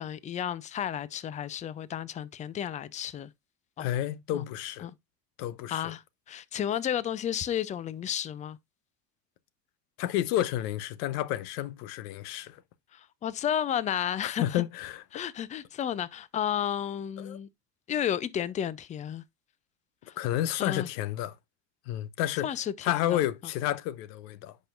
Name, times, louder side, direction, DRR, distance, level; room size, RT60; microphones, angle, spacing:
voice 1, 0.0-3.3 3.8-3.9 4.3-4.4 4.8-4.9 5.7-6.0 6.3-8.6 12.9-14.6 15.1-17.5 17.9-19.2 20.6-20.9 22.4-23.3, left 9 dB, 15° left, 0.3 m, -32 dB
voice 2, 3.8-4.9 5.4-5.9 10.0-12.6 14.2-15.0 17.2-17.4 20.2-21.4 21.9-22.5 22.8-24.6, left 13 dB, 75° left, 0.9 m, -30 dB
10.0 x 5.4 x 2.4 m
supercardioid pair, 110°, 49 cm